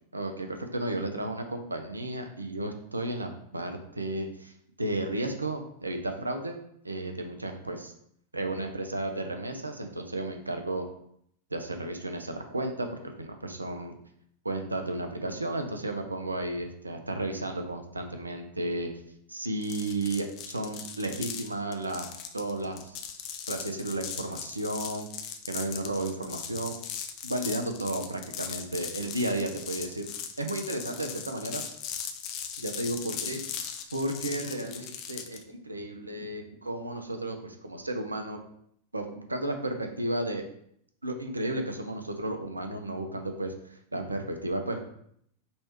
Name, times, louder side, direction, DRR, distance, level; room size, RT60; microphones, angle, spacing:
voice 1, 0.1-4.5 4.8-6.6 6.8-7.9 8.3-10.9 11.5-13.9 14.4-18.9 19.3-23.0 23.5-26.8 27.2-30.1 30.4-31.6 32.6-33.4 33.9-38.4 38.9-40.4 41.0-44.8, right 1 dB, 80° right, 6 dB, 0.5 m, -33 dB
sound 1, 19.6-35.4, left 8 dB, 40° left, 0.5 m, -39 dB
5.4 x 3.1 x 2.9 m, 0.70 s
figure-of-eight pair, 90°, 0 cm